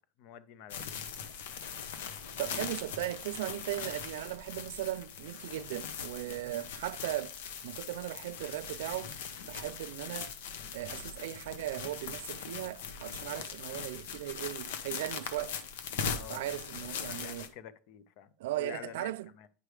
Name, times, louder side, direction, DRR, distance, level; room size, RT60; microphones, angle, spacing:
voice 1, 0.2-1.4 10.0-10.3 16.1-16.5 17.0-19.5, left 9 dB, 50° left, 0.6 m, -49 dB
sound 1, 0.7-17.5, left 6 dB, 90° left, 0.9 m, -41 dB
voice 2, 2.4-7.3 7.6-9.1 9.5-10.3 10.7-15.5 16.3-17.5 18.4-19.3, right 15 dB, 85° right, 0.3 m, -37 dB
9.6 x 3.3 x 4.8 m
supercardioid pair, 170°, 0 cm